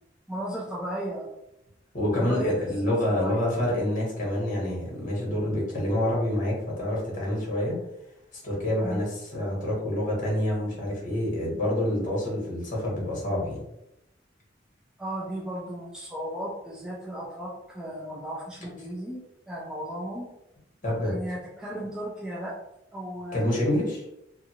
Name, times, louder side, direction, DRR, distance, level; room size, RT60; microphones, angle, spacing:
voice 1, 0.3-1.3 2.2-2.7 3.2-3.4 8.8-9.0 15.0-20.3 21.0-22.6 22.9-23.5, right 1 dB, 5° right, -6 dB, 0.4 m, -35 dB
voice 2, 1.9-7.8 8.4-13.6 20.8-21.2 23.3-24.0, left 1 dB, 45° left, -4 dB, 1.2 m, -27 dB
2.6 x 2.6 x 2.7 m, 0.85 s
head